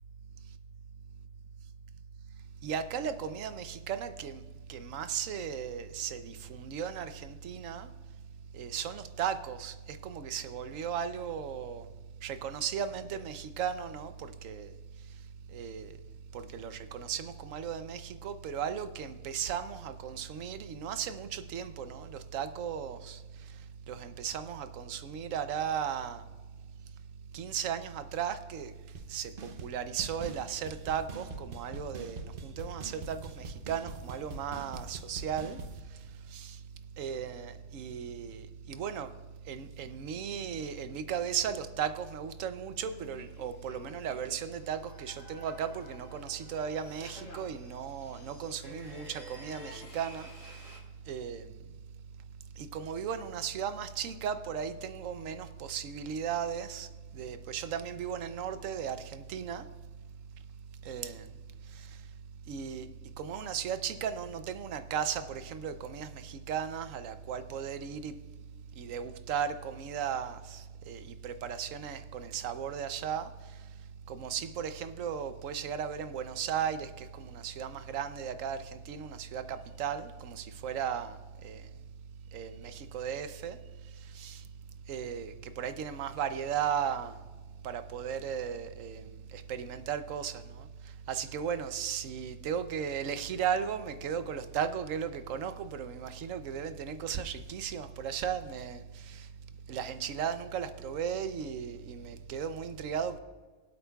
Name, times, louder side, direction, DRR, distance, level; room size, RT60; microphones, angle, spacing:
voice 1, 2.6-4.4 4.7-7.9 8.5-11.9 12.2-14.7 15.5-15.9 16.3-23.2 23.9-26.2 27.3-28.7 29.1-29.3 29.6-35.6 36.3-36.6 37.0-39.1 39.5-50.3 51.1-51.5 52.6-56.9 57.1-59.6 60.8-61.3 62.5-62.9 63.2-68.1 68.8-73.3 74.1-81.2 81.4-81.6 82.3-83.6 84.1-84.4 84.9-87.2 87.6-89.1 89.3-90.7 91.1-99.3 99.7-103.2, right 8 dB, 85° right, 1.1 m, -36 dB
sound 1, 28.9-29.1 29.4-29.7 30.0-35.8, right 3 dB, 50° right, 0.8 m, -43 dB
sound 2, 42.9-50.8, left 1 dB, 80° left, 3.2 m, -51 dB
24.0 x 8.3 x 2.3 m
omnidirectional pair, 1.3 m